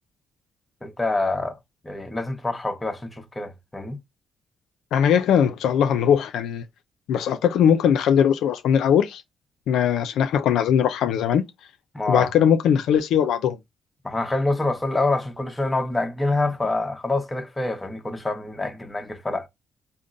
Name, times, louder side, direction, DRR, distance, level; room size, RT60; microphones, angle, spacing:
voice 1, 0.8-1.6 1.8-4.0 11.9-12.3 14.0-19.5, left 2 dB, 15° left, 0.9 m, -26 dB
voice 2, 4.9-6.6 7.1-9.2 9.7-11.4 12.1-13.6, left 8 dB, 80° left, 0.5 m, -20 dB
3.6 x 2.0 x 3.8 m
cardioid pair, 90°, 0 cm